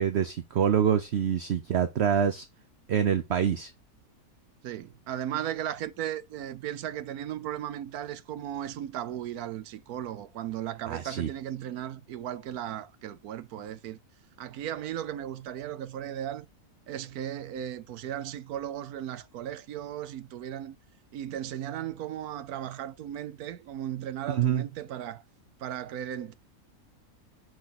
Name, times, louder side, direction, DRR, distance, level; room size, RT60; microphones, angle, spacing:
voice 1, 0.0-2.5 2.9-3.7 10.9-11.3 24.3-24.6, right 8 dB, 55° right, 0.9 m, -26 dB
voice 2, 4.6-14.0 14.4-16.5 16.9-20.8 21.1-25.2 25.6-26.3, right 11 dB, 75° right, 1.2 m, -36 dB
6.2 x 4.5 x 5.9 m
omnidirectional pair, 1.6 m